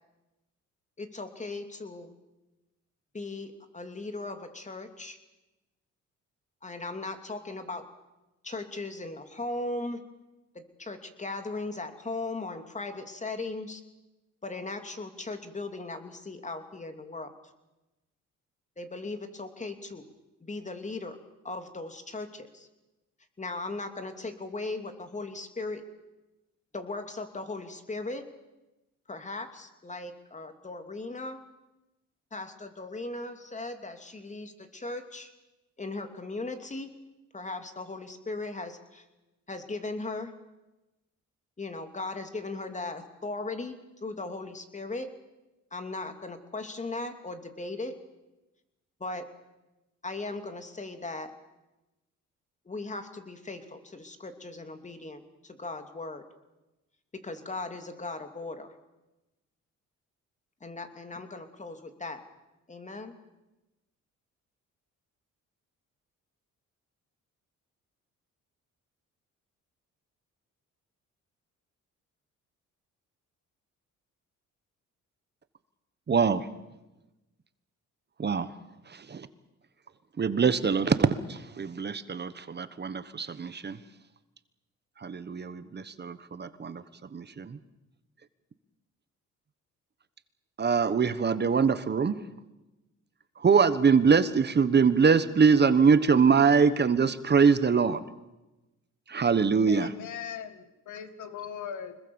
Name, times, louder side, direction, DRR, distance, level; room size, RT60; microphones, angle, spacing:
voice 1, 1.0-2.1 3.1-5.2 6.6-7.8 8.4-10.0 10.5-13.8 14.4-17.3 18.8-20.0 20.4-21.2 21.4-22.7 23.4-25.8 26.7-28.2 29.1-31.4 32.3-35.3 35.8-36.9 37.3-39.0 39.5-40.3 41.6-45.1 45.7-47.9 49.0-49.3 50.0-51.3 52.7-56.2 57.1-58.7 60.6-62.2 62.7-63.2, left 2 dB, 25° left, 7 dB, 2.7 m, -38 dB
voice 2, 76.1-76.5 78.2-78.5 78.9-79.3 80.2-83.8 85.0-86.8 87.1-87.6 90.6-92.2 93.4-98.0 99.1-99.9, right 5 dB, 35° right, 13 dB, 1.3 m, -23 dB
voice 3, 99.7-102.0, left 8 dB, 75° left, 10 dB, 2.0 m, -39 dB
25.5 x 21.0 x 7.2 m, 1.0 s
cardioid pair, 90°, 30 cm